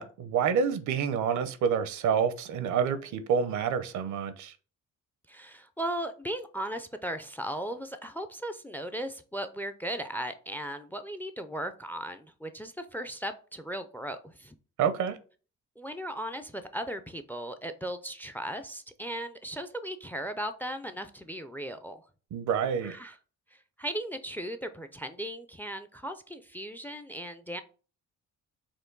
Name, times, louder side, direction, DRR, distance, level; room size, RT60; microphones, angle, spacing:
voice 1, 0.0-4.5 14.8-15.2 22.3-22.9, right 7 dB, 75° right, 0.6 m, -28 dB
voice 2, 5.3-14.6 15.8-22.0 22.8-23.2 23.5-27.6, right 1 dB, 5° left, 0.3 m, -37 dB
4.5 x 2.6 x 3.8 m
cardioid pair, 90°, 30 cm